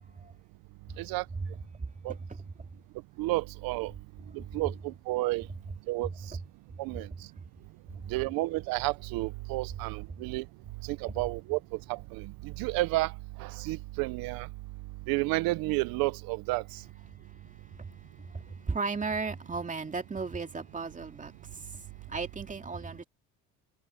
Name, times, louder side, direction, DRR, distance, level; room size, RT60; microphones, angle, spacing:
voice 1, 1.3-1.9 2.3-2.4 4.5-4.6 17.1-23.0, right 4 dB, 20° right, 2.6 m, -36 dB
voice 2, 3.2-3.9 4.3-5.5 5.9-6.4 6.8-7.3 8.1-10.5 10.8-14.5 15.1-16.8, right 21 dB, 85° right, 0.8 m, -31 dB
cardioid pair, 95°, 35 cm